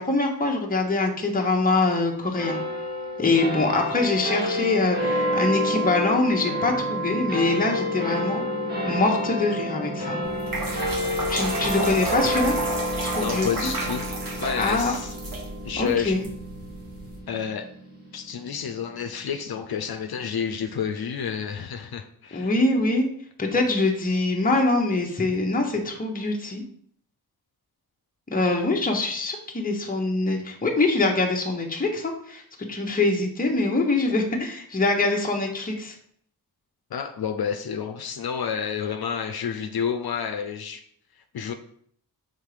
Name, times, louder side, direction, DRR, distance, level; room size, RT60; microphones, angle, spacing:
voice 1, 0.0-2.6 3.2-8.4 8.8-10.2 11.3-12.6 13.0-13.7 14.5-14.9 15.8-16.3 22.3-23.1 23.4-26.6 28.3-32.4 32.7-35.9, left 2 dB, 20° left, 0.9 m, -24 dB
sound 1, 2.3-19.1, equal, 25° right, 2.2 m, -29 dB
sound 2, 10.2-17.2, right 2 dB, 60° right, 1.3 m, -32 dB
voice 2, 13.2-14.1 14.4-15.1 15.6-16.2 17.3-17.7 18.1-22.5 36.9-40.8 41.3-41.5, left 7 dB, 75° left, 0.6 m, -29 dB
5.6 x 3.8 x 4.9 m
wide cardioid pair, 120°, 38 cm